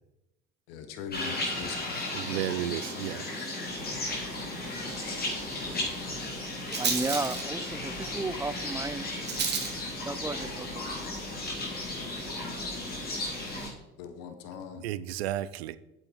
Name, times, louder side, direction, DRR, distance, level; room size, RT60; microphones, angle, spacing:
voice 1, 0.7-2.1 14.0-14.8, left 6 dB, 75° left, 7 dB, 1.3 m, -41 dB
sound 1, 1.1-13.7, left 2 dB, 30° left, 3.9 m, -35 dB
Drum kit / Drum, 1.6-6.4, right 4 dB, 60° right, 2.9 m, -51 dB
voice 2, 2.1-3.2 14.8-15.8, right 13 dB, 85° right, 17 dB, 0.5 m, -32 dB
Rattle, 3.7-13.6, right 5 dB, 35° right, 2.8 m, -38 dB
voice 3, 6.8-9.1 10.0-11.0, right 3 dB, 10° right, 14 dB, 0.6 m, -34 dB
8.5 x 7.8 x 4.6 m, 0.95 s
hypercardioid pair, 75°, 30 cm